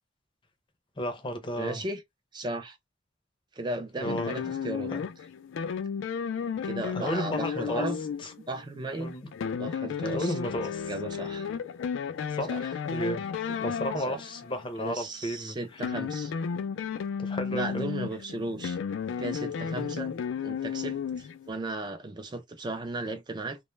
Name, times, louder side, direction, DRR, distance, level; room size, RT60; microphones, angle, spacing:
voice 1, 1.0-1.8 4.0-4.6 4.9-5.1 6.9-7.9 8.2-8.3 9.0-9.3 10.1-10.9 12.3-13.2 13.6-15.8 17.2-17.9, equal, 25° left, 0.6 m, -33 dB
voice 2, 1.6-2.0 2.3-2.8 3.6-4.9 6.6-8.0 8.5-9.1 9.6-10.3 10.9-11.5 12.5-12.7 13.5-13.6 14.1-14.2 14.8-16.3 17.5-18.8 19.2-20.1 20.4-23.6, right 2 dB, 25° right, 0.4 m, -35 dB
sound 1, 4.0-14.7 15.6-21.5, left 6 dB, 75° left, 0.3 m, -33 dB
2.2 x 2.0 x 3.1 m
head